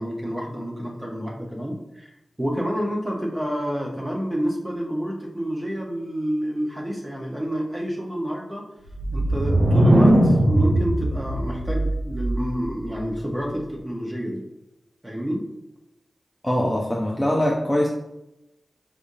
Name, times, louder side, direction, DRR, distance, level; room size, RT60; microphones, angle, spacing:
voice 1, 0.0-2.1 2.4-8.6 9.1-14.4 15.0-15.5, equal, 15° right, -1 dB, 1.1 m, -28 dB
sound 1, 8.9-12.7, right 1 dB, 70° right, 0.7 m, -20 dB
voice 2, 16.4-17.9, left 1 dB, 10° left, -3 dB, 0.7 m, -22 dB
5.1 x 3.4 x 2.7 m, 0.89 s
cardioid pair, 50°, 0 cm